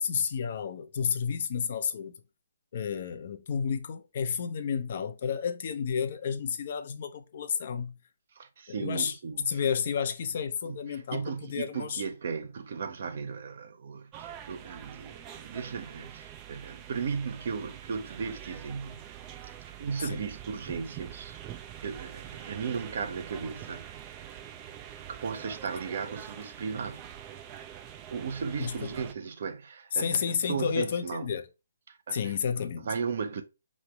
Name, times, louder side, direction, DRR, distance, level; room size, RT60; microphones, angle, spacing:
voice 1, 0.0-2.1 2.7-7.9 8.7-9.1 9.5-12.0 20.0-20.2 28.6-28.9 29.9-31.4 32.1-32.9, left 7 dB, 50° left, 0.6 m, -31 dB
voice 2, 8.3-9.6 10.6-19.0 19.8-21.4 21.8-24.2 25.1-27.1 28.1-30.2 30.5-31.3 31.9-33.4, right 5 dB, 55° right, 0.7 m, -36 dB
sound 1, 14.1-29.1, right 10 dB, 25° right, 0.4 m, -45 dB
4.9 x 3.1 x 3.2 m
figure-of-eight pair, 140°, 0 cm